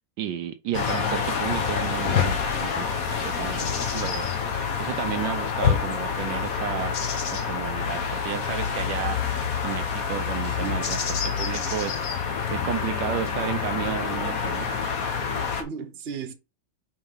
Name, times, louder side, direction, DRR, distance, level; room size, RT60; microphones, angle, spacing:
voice 1, 0.2-4.3 4.8-9.3 9.6-12.1 12.5-14.7, right 10 dB, 75° right, 1.3 m, -32 dB
sound 1, 0.7-15.6, left 6 dB, 50° left, 1.4 m, -27 dB
voice 2, 10.4-10.9 15.5-16.3, right 6 dB, 40° right, 1.1 m, -36 dB
5.5 x 4.0 x 5.5 m
omnidirectional pair, 2.1 m